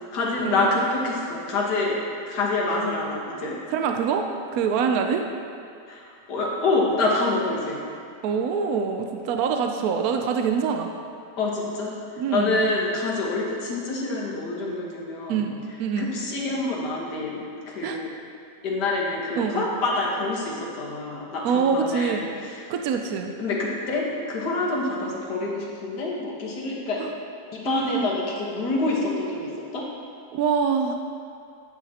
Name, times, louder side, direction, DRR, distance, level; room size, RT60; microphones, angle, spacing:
voice 1, 0.1-2.0 2.3-3.6 5.9-7.8 11.4-12.0 12.3-15.4 16.0-18.1 18.6-22.7 23.4-27.0 27.5-29.9, left 2 dB, 70° left, -3 dB, 1.9 m, -27 dB
voice 2, 3.7-4.3 4.5-5.2 8.2-10.9 12.2-12.7 15.3-16.1 17.8-18.0 19.4-19.7 21.4-22.2 22.7-23.3 27.0-27.1 27.6-28.1 30.3-31.0, right 6 dB, 70° right, 4 dB, 0.9 m, -25 dB
9.7 x 8.9 x 2.8 m, 2.4 s
omnidirectional pair, 1.9 m